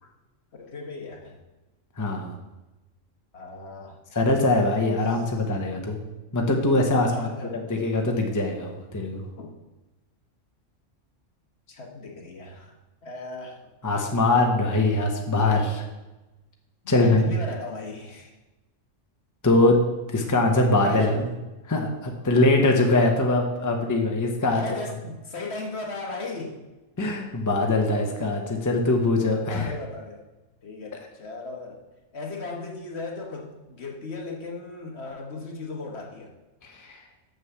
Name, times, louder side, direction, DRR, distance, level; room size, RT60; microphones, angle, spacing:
voice 1, 0.5-1.4 3.3-4.0 5.1-5.2 7.1-7.6 9.4-9.5 11.7-12.7 13.0-13.6 16.8-18.4 20.8-21.3 24.5-26.6 29.4-30.3 30.6-31.8 32.1-36.3, left 3 dB, 55° left, 1 dB, 1.5 m, -36 dB
voice 2, 2.0-2.3 4.1-6.0 6.3-9.2 13.8-15.8 16.9-17.2 19.4-19.8 20.1-21.2 21.7-24.6 27.0-29.7 36.6-37.0, left 2 dB, 15° left, 2 dB, 0.9 m, -22 dB
6.5 x 6.4 x 7.0 m, 1.1 s
omnidirectional pair, 1.3 m